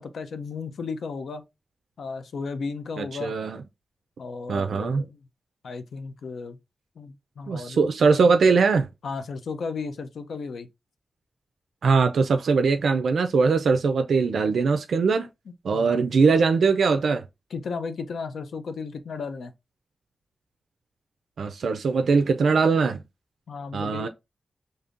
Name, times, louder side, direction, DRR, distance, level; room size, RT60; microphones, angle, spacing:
voice 1, 0.0-1.4 2.0-3.3 4.2-5.3 5.6-6.6 7.0-7.9 9.0-10.7 15.7-16.0 17.5-19.5 23.5-24.1, left 4 dB, 85° left, 0.5 m, -34 dB
voice 2, 3.0-3.6 4.5-5.0 7.5-8.9 11.8-15.3 15.6-17.2 21.4-23.0 23.7-24.1, right 4 dB, 85° right, 0.3 m, -21 dB
5.1 x 2.7 x 2.4 m
wide cardioid pair, 105°, 0 cm